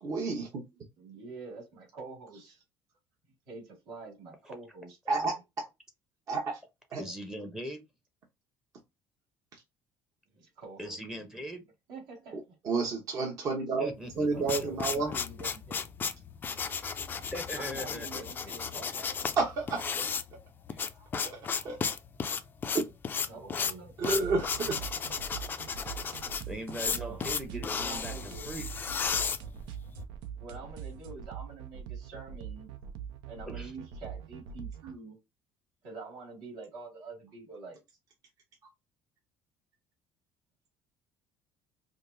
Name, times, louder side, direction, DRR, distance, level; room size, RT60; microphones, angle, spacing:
voice 1, 0.0-0.5 5.1-5.3 6.3-6.6 6.9-7.0 12.6-13.9 14.2-15.1 19.3-20.0 21.2-21.8 22.7-22.9 24.0-24.8, right 3 dB, 45° right, 0.9 m, -30 dB
voice 2, 1.0-2.6 3.5-5.4 10.3-11.2 11.9-12.4 14.3-15.9 17.5-19.2 23.3-23.9 25.2-25.3 26.8-28.5 30.3-32.7 33.3-35.2 35.8-38.0, right 3 dB, 70° right, 2.1 m, -46 dB
voice 3, 7.0-7.8 10.8-11.7 13.8-14.7 17.2-18.5 20.7-20.8 26.5-28.7 33.4-33.7, equal, 5° right, 0.7 m, -40 dB
sound 1, 14.1-30.0, left 6 dB, 25° left, 0.3 m, -34 dB
sound 2, 24.0-34.9, right 8 dB, 85° right, 0.6 m, -43 dB
5.1 x 2.0 x 2.6 m
cardioid pair, 145°, 8 cm